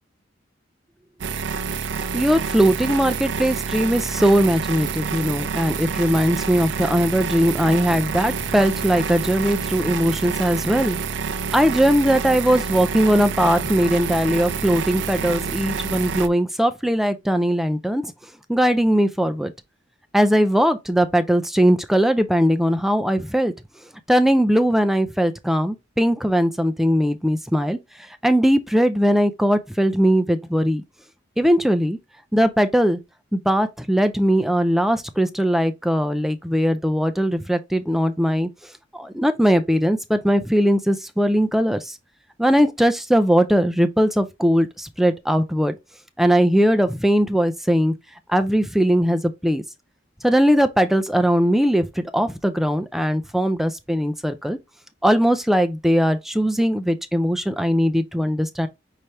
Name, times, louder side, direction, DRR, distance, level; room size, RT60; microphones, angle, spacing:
sound 1, 1.2-16.3, right 5 dB, 70° right, 0.4 m, -28 dB
voice 1, 2.1-11.0 11.5-18.1 18.5-19.5 20.1-23.5 24.1-27.8 28.2-30.8 31.4-32.0 32.3-33.0 33.3-38.5 38.9-42.0 42.4-45.8 46.2-47.9 48.3-49.6 50.2-54.6 55.0-58.7, equal, ahead, 0.4 m, -20 dB
5.6 x 3.2 x 2.7 m
head